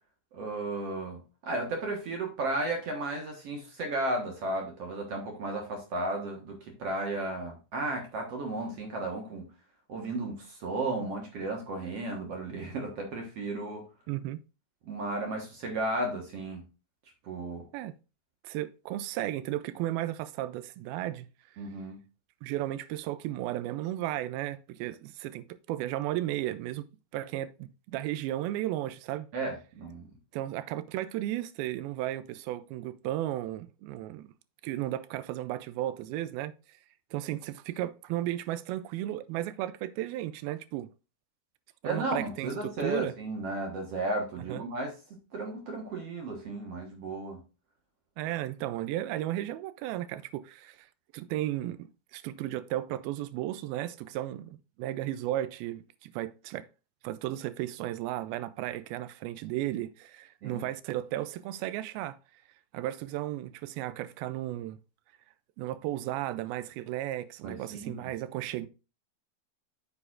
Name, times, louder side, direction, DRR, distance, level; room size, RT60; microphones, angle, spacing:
voice 1, 0.3-9.5 9.9-13.9 14.8-16.7 17.2-17.7 21.6-22.0 29.3-30.1 41.8-47.4 60.4-60.6 67.4-68.1, right 2 dB, 55° right, 1.8 m, -34 dB
voice 2, 14.1-14.4 17.7-17.9 18.4-21.3 22.4-26.9 27.1-29.3 30.3-34.3 34.6-36.5 37.1-40.9 41.8-42.5 42.8-43.2 44.5-44.6 48.2-50.9 51.1-56.7 57.0-62.2 62.7-64.8 65.6-68.7, right 14 dB, 85° right, 2.4 m, -34 dB
8.4 x 7.2 x 2.5 m
omnidirectional pair, 4.3 m